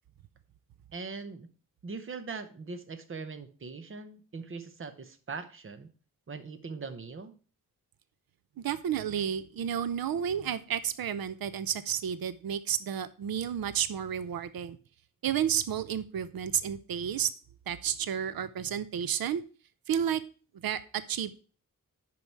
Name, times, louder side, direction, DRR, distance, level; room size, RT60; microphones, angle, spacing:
voice 1, 0.9-1.5 1.8-5.9 6.3-7.4, right 4 dB, 35° right, 10 dB, 0.9 m, -41 dB
voice 2, 8.6-14.8 15.2-17.3 17.7-19.4 19.9-20.2 20.6-21.3, right 9 dB, 90° right, 14 dB, 0.6 m, -31 dB
11.0 x 4.7 x 4.6 m, 0.39 s
wide cardioid pair, 170°, 34 cm